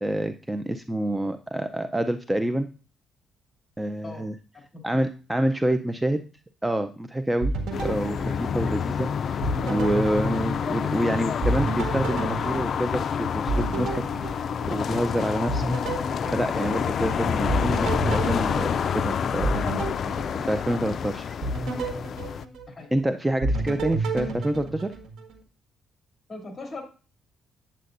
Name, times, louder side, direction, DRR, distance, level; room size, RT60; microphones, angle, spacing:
voice 1, 0.0-2.7 3.8-4.4 4.8-6.2 6.6-7.5 7.8-16.0 16.3-19.6 20.3-21.4 22.9-25.0, right 1 dB, 10° right, 9 dB, 0.5 m, -27 dB
sound 1, 7.4-9.0 9.4-11.0 11.4-15.1 15.5-17.1 17.5-20.9 21.4-23.0 23.4-25.4, right 2 dB, 80° right, 1.6 m, -31 dB
sound 2, 7.7-22.5, left 7 dB, 55° left, 0.3 m, -28 dB
voice 2, 26.3-26.8, left 3 dB, 30° left, 2 dB, 2.8 m, -40 dB
8.5 x 8.1 x 2.5 m, 0.35 s
cardioid pair, 90°, 0 cm